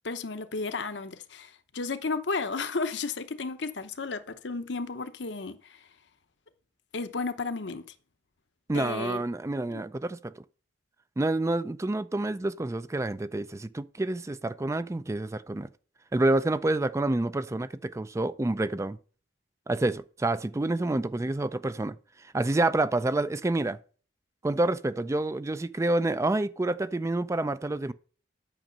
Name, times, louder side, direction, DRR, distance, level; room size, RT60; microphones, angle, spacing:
voice 1, 0.0-5.6 6.9-7.8 8.7-9.2 9.7-9.8, left 4 dB, 80° left, 0.9 m, -33 dB
voice 2, 8.7-10.3 11.2-15.7 16.1-19.0 19.7-22.0 22.3-23.8 24.4-27.9, right 2 dB, 15° right, 0.4 m, -28 dB
9.0 x 6.3 x 5.2 m
head